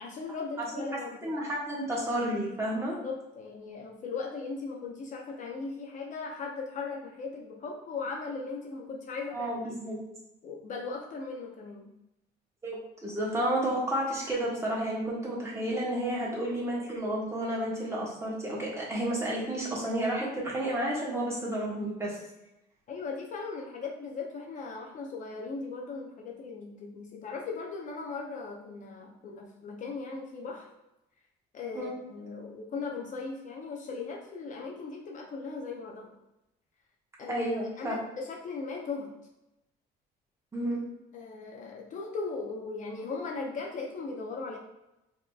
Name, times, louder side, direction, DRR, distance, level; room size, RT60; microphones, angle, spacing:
voice 1, 0.0-1.3 3.0-9.7 10.4-11.9 22.9-30.7 31.5-36.1 37.2-37.4 37.8-39.1 41.1-44.6, left 4 dB, 50° left, 0 dB, 0.6 m, -38 dB
voice 2, 1.2-3.0 9.3-10.0 12.6-22.2 31.7-31.9 37.3-38.0 40.5-40.8, right 1 dB, 15° right, -4 dB, 1.3 m, -31 dB
4.7 x 2.9 x 2.3 m, 0.92 s
cardioid pair, 110°, 17 cm